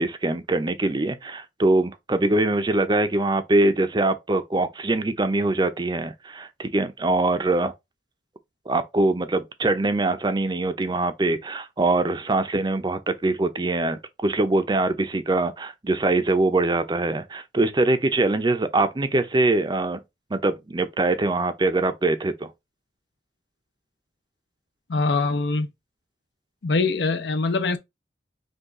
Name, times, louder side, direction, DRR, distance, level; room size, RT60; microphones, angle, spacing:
voice 1, 0.0-7.7 8.7-20.0 20.3-22.5, right 2 dB, 25° right, 0.5 m, -23 dB
voice 2, 24.9-25.7 26.6-27.8, left 3 dB, 70° left, 0.6 m, -23 dB
5.3 x 2.4 x 3.6 m
head